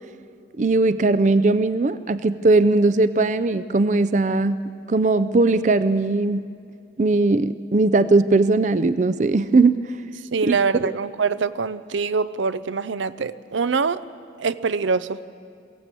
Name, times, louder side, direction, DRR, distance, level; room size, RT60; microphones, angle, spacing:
voice 1, 0.6-4.6 4.9-6.5 7.0-9.8 10.5-10.9, right 3 dB, 40° right, 14 dB, 0.4 m, -19 dB
voice 2, 10.3-14.0 14.4-15.2, right 5 dB, 85° right, 15 dB, 0.6 m, -24 dB
22.0 x 16.5 x 8.2 m, 2.3 s
head